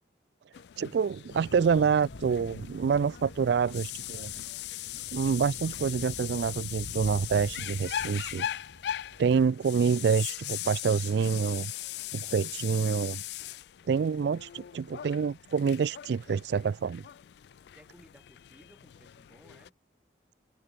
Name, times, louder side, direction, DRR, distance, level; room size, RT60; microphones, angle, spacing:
sound 1, 0.5-19.7, left 12 dB, 65° left, 0.3 m, -40 dB
voice 1, 0.8-4.3 5.1-8.5 9.2-11.7 12.1-13.2 13.9-17.0, right 6 dB, 65° right, 0.3 m, -27 dB
sound 2, 1.3-9.5, left 1 dB, 90° left, 1.8 m, -47 dB
voice 2, 3.3-3.8 9.4-9.6 17.7-19.8, equal, 5° right, 3.2 m, -59 dB
head